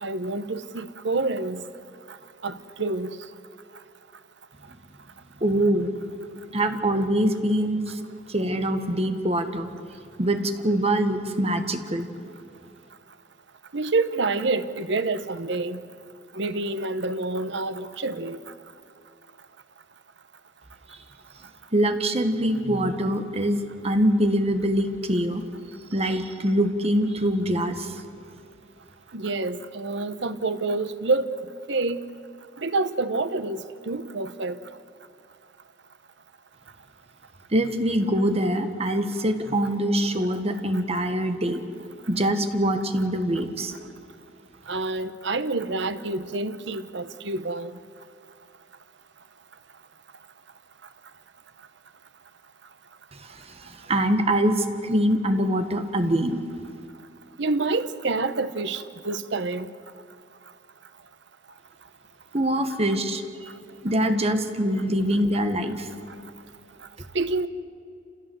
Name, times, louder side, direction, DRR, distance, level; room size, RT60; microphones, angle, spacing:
voice 1, 0.0-1.6 2.4-3.2 13.7-15.8 16.3-18.4 29.1-31.3 31.7-32.0 32.6-34.6 44.7-47.7 57.4-59.7 67.1-67.5, right 3 dB, 70° right, 11 dB, 1.0 m, -27 dB
voice 2, 5.4-5.9 6.5-8.0 8.3-9.7 10.2-12.1 21.7-25.4 25.9-28.0 37.5-41.6 42.1-43.7 53.1-56.4 62.3-63.5 63.8-65.9, right 1 dB, 35° right, 7 dB, 1.5 m, -24 dB
28.5 x 16.0 x 7.9 m, 2.5 s
head